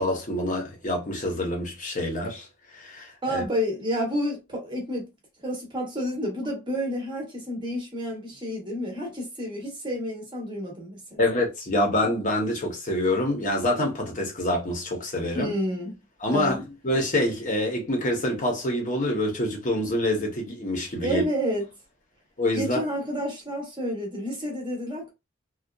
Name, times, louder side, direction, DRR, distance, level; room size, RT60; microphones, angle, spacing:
voice 1, 0.0-2.5 2.7-3.4 11.2-15.5 16.2-21.2 22.4-22.8, left 1 dB, 35° left, 0.7 m, -26 dB
voice 2, 3.2-5.1 5.4-11.3 15.3-16.0 16.3-16.6 21.0-21.6 22.6-25.1, equal, 20° right, 0.7 m, -30 dB
2.6 x 2.2 x 2.2 m
head